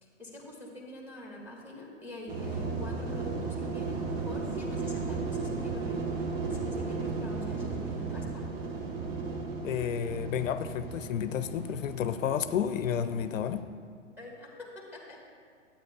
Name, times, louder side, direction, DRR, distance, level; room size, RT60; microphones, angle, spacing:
voice 1, 0.0-8.5 14.2-15.2, left 1 dB, 5° right, -3 dB, 1.5 m, -45 dB
sound 1, 2.3-13.6, right 4 dB, 50° right, 1.2 m, -35 dB
voice 2, 9.6-13.7, left 9 dB, 80° left, 10 dB, 0.5 m, -31 dB
11.5 x 8.6 x 2.4 m, 2.1 s
hypercardioid pair, 120°, 39 cm